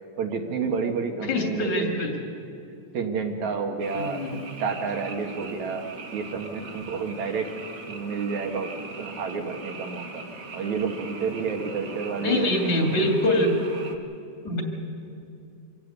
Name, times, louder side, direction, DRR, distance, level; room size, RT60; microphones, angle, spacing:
voice 1, 0.2-1.9 2.9-4.2 4.6-5.9 6.1-7.5 7.9-10.2 10.5-13.1, right 5 dB, 70° right, 3 dB, 2.9 m, -30 dB
voice 2, 1.3-2.2 3.9-4.4 12.2-13.6 14.4-14.6, left 1 dB, 70° left, 2 dB, 4.0 m, -24 dB
Frog, 3.8-14.0, right 3 dB, 40° right, 1.4 m, -40 dB
25.5 x 16.5 x 8.0 m, 2.7 s
omnidirectional pair, 3.5 m